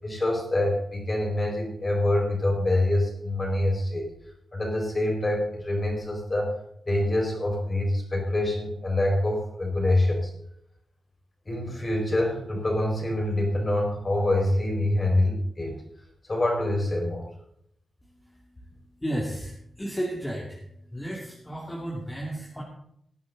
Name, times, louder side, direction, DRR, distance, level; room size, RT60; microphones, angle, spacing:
voice 1, 0.0-4.1 4.5-6.5 6.9-10.3 11.5-15.8 16.2-17.2, left 1 dB, 30° left, 0 dB, 5.4 m, -25 dB
voice 2, 19.0-20.6 20.9-22.6, right 1 dB, 10° left, -3 dB, 2.6 m, -33 dB
18.5 x 10.5 x 4.0 m, 0.72 s
wide cardioid pair, 110°, 0 cm